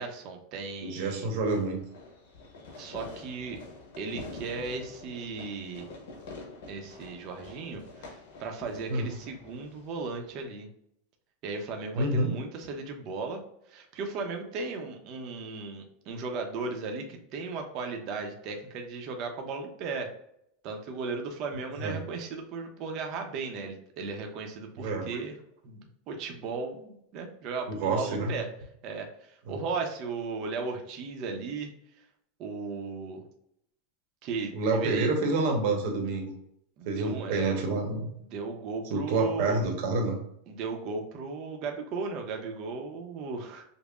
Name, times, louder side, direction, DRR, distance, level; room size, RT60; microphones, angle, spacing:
voice 1, 0.0-1.3 2.8-3.6 4.0-5.9 6.7-10.7 11.4-13.4 13.7-20.1 20.6-25.3 25.6-28.5 28.8-31.7 32.4-33.2 34.2-35.1 36.8-37.6 38.2-39.6 40.5-43.6, right 4 dB, 40° right, 3 dB, 0.7 m, -36 dB
voice 2, 0.8-1.8 8.9-9.1 12.0-12.3 21.8-22.0 24.8-25.1 27.7-28.3 29.5-29.6 34.5-36.3 36.8-38.1 38.9-40.2, right 3 dB, 60° right, 2 dB, 1.0 m, -28 dB
Fireworks, 1.4-10.4, left 3 dB, 80° left, 1.1 m, -47 dB
5.3 x 2.1 x 2.4 m, 0.73 s
supercardioid pair, 160°, 0 cm